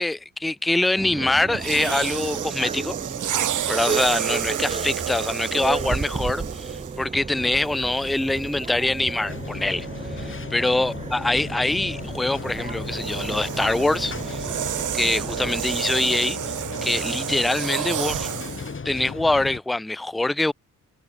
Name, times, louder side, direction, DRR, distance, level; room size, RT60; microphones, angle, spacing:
voice 1, 0.0-2.9 3.7-9.9 10.1-14.5 14.9-16.5 16.8-18.3 18.8-20.5, left 2 dB, ahead, 0.4 m, -24 dB
sound 1, 0.9-15.8, right 4 dB, 20° right, 0.7 m, -34 dB
sound 2, 1.5-7.1 7.9-8.1 12.0-18.7, right 10 dB, 60° right, 1.2 m, -30 dB
sound 3, 9.3-19.6, left 5 dB, 35° left, 4.1 m, -36 dB
cardioid pair, 65°, 34 cm